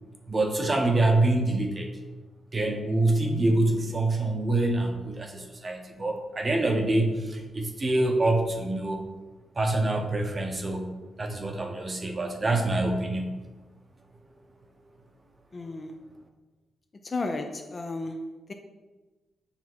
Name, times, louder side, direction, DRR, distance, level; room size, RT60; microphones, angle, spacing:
voice 1, 0.3-1.9 2.5-9.0 9.6-13.3, right 2 dB, 25° right, 3 dB, 0.8 m, -26 dB
voice 2, 15.5-16.0 17.0-18.5, left 2 dB, 25° left, 5 dB, 0.5 m, -34 dB
7.0 x 3.5 x 6.1 m, 1.2 s
wide cardioid pair, 170°, 0 cm